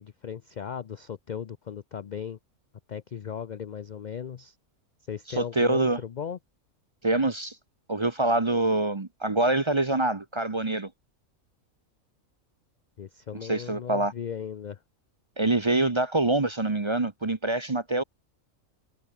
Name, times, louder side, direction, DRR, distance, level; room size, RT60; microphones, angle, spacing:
voice 1, 0.0-2.4 2.9-4.6 5.1-6.4 13.0-14.8, left 8 dB, 55° left, 0.5 m, -37 dB
voice 2, 5.3-6.0 7.0-7.6 7.9-10.9 13.4-14.1 15.4-18.0, right 2 dB, 25° right, 0.9 m, -25 dB
omnidirectional pair, 1.4 m